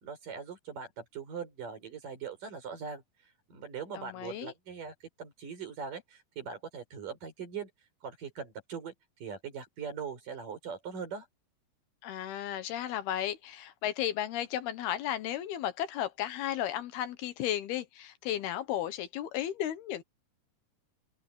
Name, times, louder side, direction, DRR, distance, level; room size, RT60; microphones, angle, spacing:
voice 1, 0.0-3.0 3.5-7.7 8.0-8.9 9.2-11.3, right 6 dB, 55° right, 6.4 m, -41 dB
voice 2, 3.9-4.5 12.0-20.0, left 11 dB, 75° left, 3.1 m, -34 dB
open air
omnidirectional pair, 4.6 m